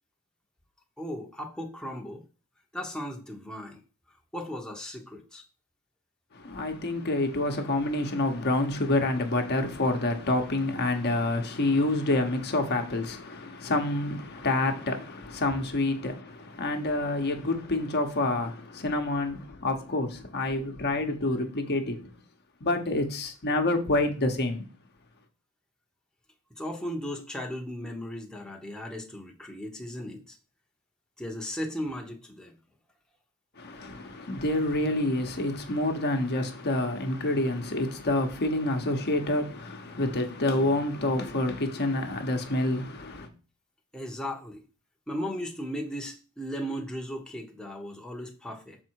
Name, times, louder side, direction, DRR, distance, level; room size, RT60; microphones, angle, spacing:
voice 1, 1.0-2.2 2.7-3.8 4.1-5.4 26.6-30.4 31.2-32.5 43.9-44.6 45.1-48.8, equal, 5° left, 0.9 m, -36 dB
voice 2, 6.3-22.2 22.6-24.6 33.6-43.3, left 2 dB, 45° left, 1.0 m, -28 dB
6.8 x 4.4 x 4.6 m
head